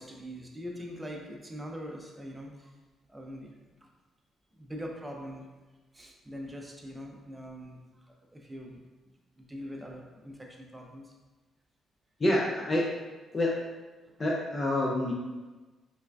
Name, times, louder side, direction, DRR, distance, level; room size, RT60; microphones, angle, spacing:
voice 1, 0.0-2.7 3.1-3.5 3.8-3.9 4.5-5.5 5.9-8.8 9.4-11.1 14.1-14.2, equal, 15° right, 0 dB, 0.6 m, -43 dB
voice 2, 12.2-12.9 13.3-13.5 14.2-15.1, left 1 dB, 30° left, -2 dB, 0.5 m, -27 dB
3.7 x 3.3 x 2.3 m, 1.2 s
cardioid pair, 90°, 0 cm